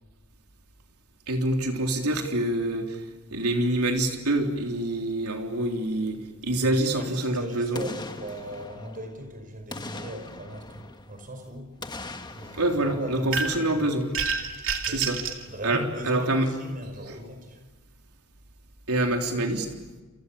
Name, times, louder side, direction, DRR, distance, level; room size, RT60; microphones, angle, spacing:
voice 1, 1.3-3.0 3.3-7.8 12.5-14.1 14.9-15.2 15.6-16.5 18.9-19.7, right 1 dB, 90° right, 3 dB, 3.7 m, -26 dB
voice 2, 6.6-11.7 12.3-13.9 14.9-15.1 15.5-17.6, equal, 40° right, 6 dB, 5.6 m, -38 dB
Boom, 7.7-9.3 9.7-11.3 11.8-14.0 14.4-14.5, left 2 dB, 20° left, 1.5 m, -41 dB
sound 1, 13.3-13.7 14.1-15.4, right 5 dB, 60° right, 2.7 m, -28 dB
29.0 x 28.5 x 7.2 m, 1.2 s
head